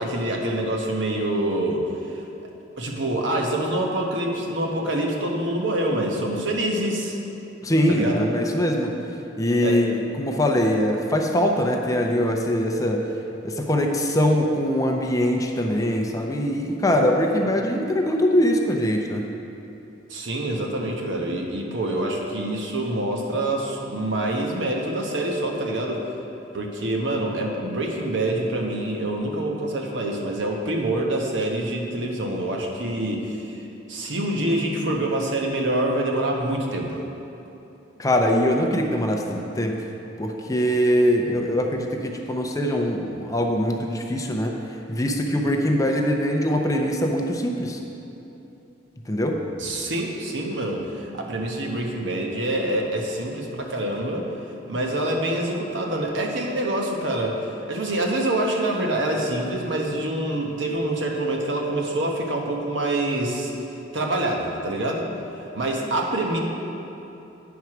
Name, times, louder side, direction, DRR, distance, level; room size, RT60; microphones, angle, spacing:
voice 1, 0.0-2.2 2.8-7.2 7.9-8.3 9.6-9.8 20.1-26.0 26.5-37.0 49.6-54.3 54.7-63.7 63.9-65.1 65.5-66.4, right 1 dB, 80° right, 0 dB, 1.1 m, -26 dB
voice 2, 7.6-8.9 9.4-13.1 13.4-19.2 38.0-39.8 40.2-44.5 44.9-47.8 49.1-49.4, equal, 20° left, 2 dB, 0.6 m, -22 dB
9.2 x 4.7 x 5.9 m, 2.9 s
head